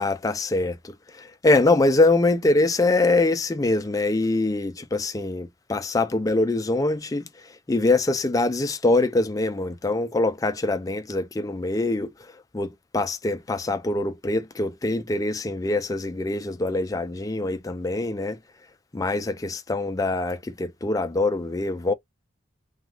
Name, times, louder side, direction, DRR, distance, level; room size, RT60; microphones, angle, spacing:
voice 1, 0.0-7.2 7.7-12.1 12.5-18.4 18.9-21.9, left 2 dB, 20° left, 0.3 m, -24 dB
2.8 x 2.3 x 2.6 m
head